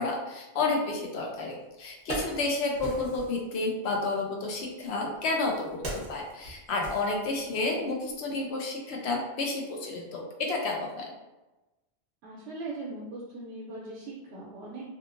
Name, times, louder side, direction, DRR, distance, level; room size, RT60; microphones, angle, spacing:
voice 1, 0.0-11.1, left 3 dB, 75° left, 0 dB, 0.8 m, -31 dB
Wood, 1.3-1.4 1.8-3.4 4.4-7.7 8.0-8.2, right 1 dB, 40° right, 0.8 m, -40 dB
voice 2, 12.2-14.9, right 2 dB, 85° right, -5 dB, 0.9 m, -40 dB
2.8 x 2.4 x 2.4 m, 1.1 s
omnidirectional pair, 1.1 m